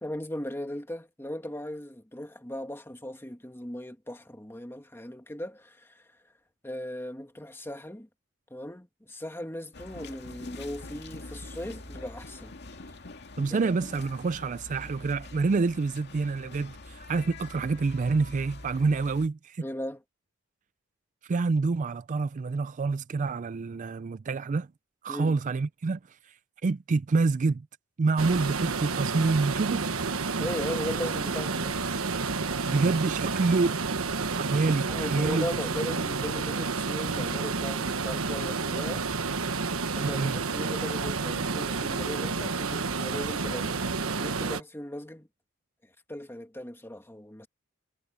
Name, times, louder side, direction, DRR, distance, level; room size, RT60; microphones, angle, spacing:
voice 1, 0.0-6.1 6.6-8.1 8.5-12.6 13.5-13.6 19.6-20.0 25.1-25.4 30.4-31.8 34.9-39.1 40.0-45.3 46.1-47.5, left 1 dB, 10° left, 1.9 m, -38 dB
sound 1, 9.7-19.3, left 2 dB, 55° left, 2.2 m, -45 dB
voice 2, 13.4-19.6 21.2-24.7 25.0-26.4 26.6-27.7 28.0-29.9 32.7-33.8 34.4-35.5 40.0-40.4, right 4 dB, 40° right, 0.4 m, -27 dB
sound 2, 28.2-44.6, right 4 dB, 85° right, 1.3 m, -30 dB
head